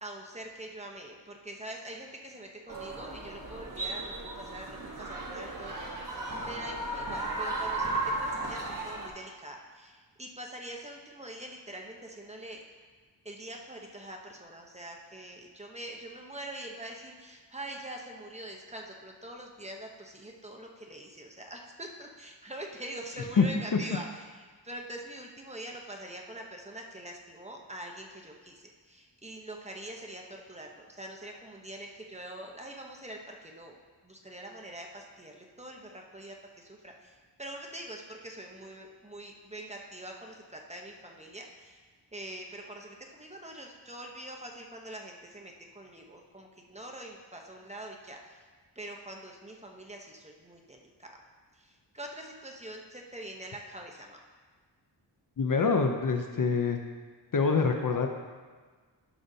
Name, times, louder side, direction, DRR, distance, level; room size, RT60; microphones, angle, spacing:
voice 1, 0.0-12.6 13.2-24.2 24.6-33.8 34.0-41.8 42.1-48.4 48.7-51.2 51.5-54.2, right 1 dB, 15° right, 0 dB, 0.9 m, -44 dB
sound 1, 2.7-9.1, right 2 dB, 45° right, 1.4 m, -35 dB
voice 2, 55.4-56.8 57.3-58.1, left 5 dB, 45° left, 4 dB, 0.7 m, -25 dB
11.0 x 6.5 x 2.8 m, 1.5 s
wide cardioid pair, 95°, 44 cm